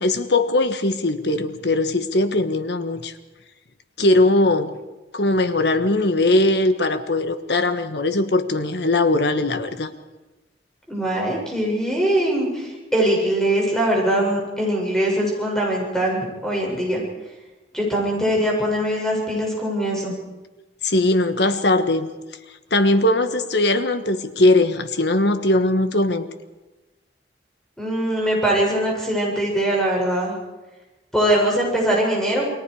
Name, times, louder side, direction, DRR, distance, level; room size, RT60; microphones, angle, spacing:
voice 1, 0.0-3.1 4.0-4.8 5.1-9.9 20.8-22.1 22.7-26.3, left 2 dB, 65° left, 9 dB, 1.5 m, -20 dB
voice 2, 10.9-17.0 17.7-20.2 27.8-30.3 31.1-32.5, right 1 dB, 5° left, -2 dB, 7.0 m, -22 dB
29.0 x 21.0 x 4.9 m, 1.1 s
head